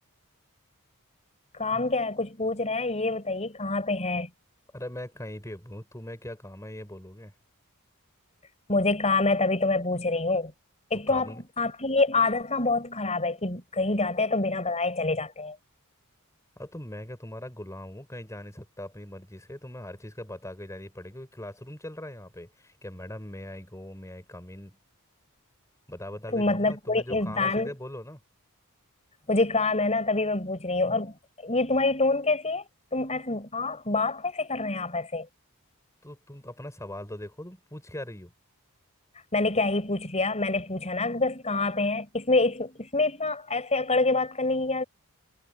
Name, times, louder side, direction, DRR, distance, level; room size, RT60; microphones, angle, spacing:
voice 1, 1.5-4.3 8.7-10.5 10.9-15.6 26.3-27.7 29.3-31.1 31.4-32.6 32.9-35.3 39.3-44.8, left 3 dB, 30° left, 7.4 m, -26 dB
voice 2, 4.7-7.3 11.1-11.4 16.6-24.8 25.9-28.2 36.0-38.3, left 1 dB, 15° left, 7.7 m, -40 dB
head